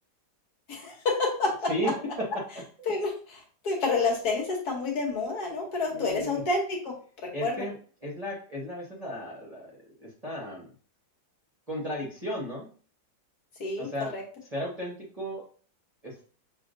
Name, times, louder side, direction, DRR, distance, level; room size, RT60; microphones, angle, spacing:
voice 1, 0.7-1.5 2.9-6.9 7.4-7.6 13.6-14.2, left 3 dB, 60° left, 0 dB, 1.5 m, -29 dB
voice 2, 1.7-2.4 2.8-2.9 5.9-6.4 7.3-7.7 8.0-9.7 10.0-10.7 11.7-12.7 13.8-14.1 14.5-15.4 16.0-16.1, equal, 25° right, -4 dB, 0.9 m, -34 dB
6.3 x 2.9 x 2.6 m, 0.42 s
omnidirectional pair, 2.0 m